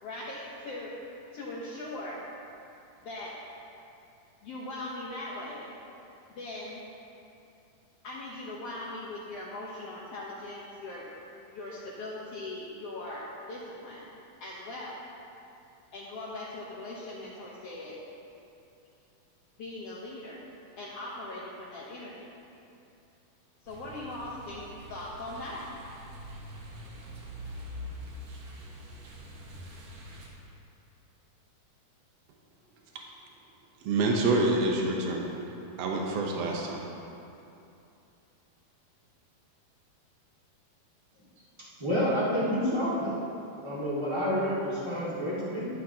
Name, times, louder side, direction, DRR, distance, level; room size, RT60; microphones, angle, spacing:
voice 1, 0.0-1.0 1.3-2.2 3.0-3.4 4.4-5.7 6.3-6.8 8.0-11.1 11.5-14.1 14.4-15.0 15.9-18.0 19.6-20.4 20.8-22.3 23.6-25.7, left 2 dB, 75° left, -6 dB, 1.4 m, -40 dB
sound 1, 23.7-30.3, equal, 60° right, 2.7 m, -44 dB
voice 2, 33.8-35.2 35.8-36.8, right 2 dB, 85° right, 0 dB, 1.4 m, -27 dB
voice 3, 41.8-43.1 43.6-45.7, equal, 15° right, -9 dB, 1.2 m, -29 dB
12.0 x 11.0 x 2.9 m, 2.7 s
omnidirectional pair, 4.3 m